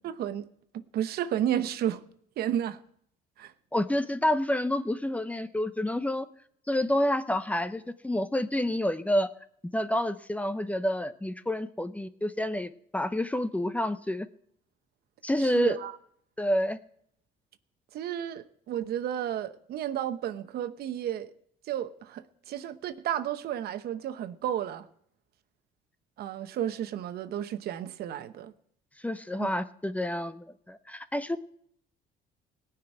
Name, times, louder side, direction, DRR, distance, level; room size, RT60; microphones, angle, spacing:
voice 1, 0.0-0.5 0.7-2.0 2.4-2.8 3.4-3.5 15.4-16.0 17.9-21.3 21.6-24.9 26.2-28.5 29.4-29.5, right 10 dB, 65° right, 0.9 m, -32 dB
voice 2, 3.7-6.3 6.7-9.3 9.7-14.3 15.2-15.8 16.4-16.8 29.0-31.4, left 1 dB, 10° left, 0.6 m, -28 dB
18.0 x 6.0 x 9.0 m
cardioid pair, 110°, 17 cm